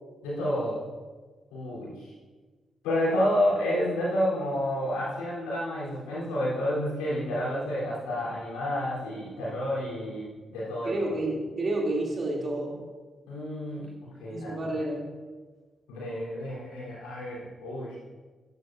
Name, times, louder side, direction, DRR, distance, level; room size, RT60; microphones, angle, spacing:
voice 1, 0.2-0.8 1.5-2.1 2.8-11.1 13.3-13.9 14.2-14.5 15.9-18.0, equal, 90° left, -8 dB, 3.7 m, -30 dB
voice 2, 10.8-12.8 14.3-15.1, right 1 dB, 50° right, -2 dB, 2.9 m, -30 dB
13.0 x 11.0 x 2.7 m, 1.3 s
hypercardioid pair, 40°, 0 cm